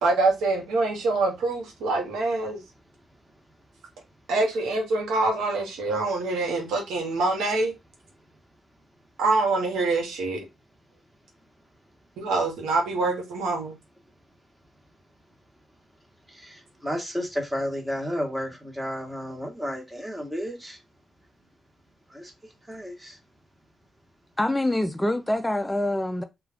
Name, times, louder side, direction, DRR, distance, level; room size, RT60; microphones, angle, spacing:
voice 1, 0.0-2.6 4.3-7.7 9.2-10.4 12.2-13.7, right 3 dB, 90° right, 0.9 m, -25 dB
voice 2, 16.3-20.8 22.1-22.3 22.7-23.2, equal, 10° right, 1.0 m, -32 dB
voice 3, 24.4-26.2, left 1 dB, 10° left, 0.3 m, -25 dB
2.3 x 2.3 x 3.4 m
cardioid pair, 80°, 0 cm